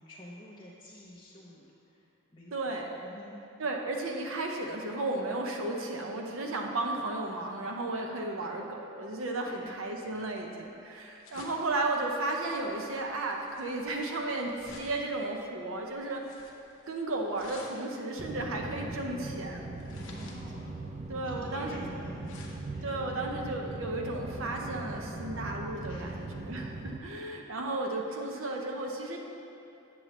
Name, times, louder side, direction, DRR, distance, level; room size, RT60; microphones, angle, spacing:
voice 1, 0.0-2.1 2.3-2.5 3.0-3.4 9.4-9.7 10.0-10.1 19.9-20.8 21.2-22.4 22.7-22.9 25.9-26.4, left 1 dB, 20° left, -9 dB, 0.7 m, -49 dB
voice 2, 2.5-2.9 3.6-16.2 16.9-19.7 21.1-21.8 22.8-29.2, right 2 dB, 70° right, 1 dB, 0.7 m, -34 dB
sound 1, 9.9-24.4, left 3 dB, 65° left, 0.9 m, -54 dB
sound 2, 18.2-27.0, right 2 dB, 30° right, 0.4 m, -40 dB
7.8 x 7.4 x 3.1 m, 2.8 s
head